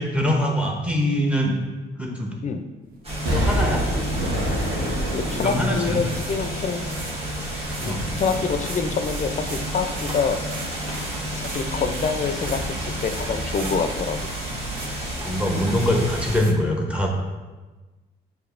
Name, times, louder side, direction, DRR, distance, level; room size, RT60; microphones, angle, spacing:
voice 1, 0.0-1.6 2.0-2.4 3.3-3.9 5.4-6.1 7.8-8.0 15.2-17.1, left 1 dB, 5° right, 0 dB, 0.8 m, -23 dB
sound 1, 3.0-16.4, equal, 30° right, 1.2 m, -30 dB
Explosion, 3.3-7.2 7.6-7.7, equal, 75° right, 1.1 m, -26 dB
sound 2, 4.4-4.8 5.3-5.6 5.8-6.4 6.9-7.2 7.4-7.5 7.7-12.7 13.0-13.8 14.1-15.0 15.3-16.5, right 4 dB, 45° right, 0.6 m, -41 dB
voice 2, 5.1-7.0 7.8-10.4 11.3-14.3, left 5 dB, 40° left, 8 dB, 0.4 m, -26 dB
6.5 x 2.7 x 2.5 m, 1.2 s
cardioid pair, 90°, 20 cm